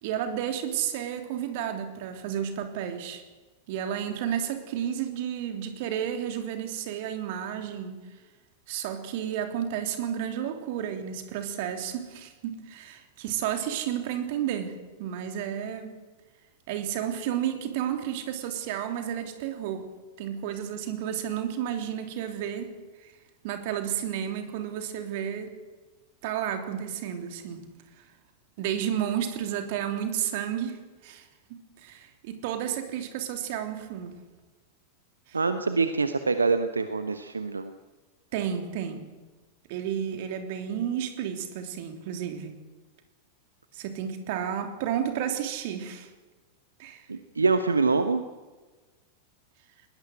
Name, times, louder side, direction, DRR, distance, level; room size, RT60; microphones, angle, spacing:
voice 1, 0.0-3.2 3.7-8.0 8.7-15.9 16.7-19.9 20.2-22.7 23.0-23.1 23.4-25.5 26.2-27.7 28.6-34.2 35.3-35.4 38.3-39.1 39.7-42.5 43.7-46.1 46.8-47.0, right 9 dB, 50° right, 6 dB, 3.2 m, -32 dB
voice 2, 35.3-37.7 47.1-48.2, right 4 dB, 75° right, 10 dB, 1.1 m, -25 dB
20.5 x 20.0 x 7.9 m, 1.3 s
figure-of-eight pair, 90°, 0 cm